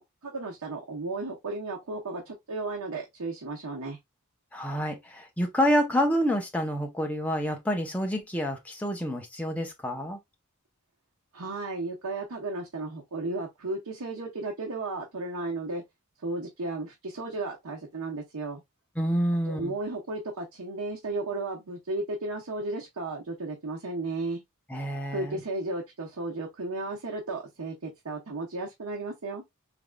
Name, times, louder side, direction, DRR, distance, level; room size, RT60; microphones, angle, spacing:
voice 1, 0.2-4.0 11.3-15.8 16.2-18.6 19.5-24.4 25.1-29.4, right 2 dB, 85° right, 0.9 m, -34 dB
voice 2, 4.5-10.2 19.0-19.7 24.7-25.4, equal, 5° left, 0.6 m, -28 dB
3.7 x 3.4 x 2.2 m
head